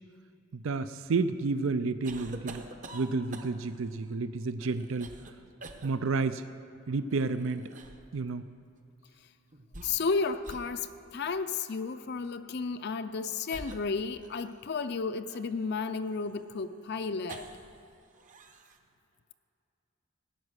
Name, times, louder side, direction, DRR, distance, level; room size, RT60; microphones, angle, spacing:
voice 1, 0.5-2.6 2.9-5.1 5.8-6.4 6.9-7.7 8.1-8.4, right 4 dB, 65° right, 13 dB, 0.5 m, -30 dB
sound 1, 2.0-3.8 4.6-5.3 5.6-5.9 7.1-8.1 9.5-10.1 10.4-10.7 11.3-11.5 12.6-12.7 13.5-14.7 15.3-17.8 18.1-18.8, right 2 dB, 40° right, 0.9 m, -47 dB
voice 2, 9.8-17.5, left 4 dB, 50° left, 10 dB, 0.5 m, -33 dB
17.0 x 9.7 x 6.5 m, 2.7 s
head